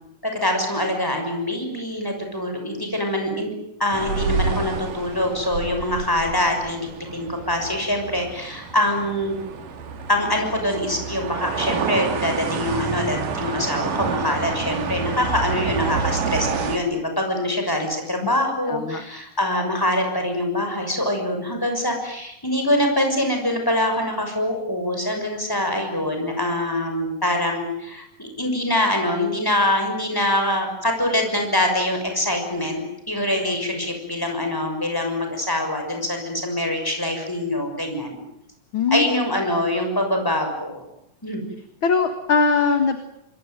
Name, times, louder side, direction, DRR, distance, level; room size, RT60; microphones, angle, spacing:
voice 1, 0.2-3.5 3.8-9.4 10.1-38.2 38.9-40.8 41.2-41.4, left 1 dB, 5° left, 4 dB, 6.1 m, -24 dB
sound 1, 3.9-16.8, right 5 dB, 70° right, 3.9 m, -28 dB
voice 2, 18.7-19.0 38.7-39.1 41.8-43.0, left 4 dB, 45° left, 8 dB, 2.0 m, -20 dB
26.5 x 21.5 x 9.2 m, 0.78 s
omnidirectional pair, 4.0 m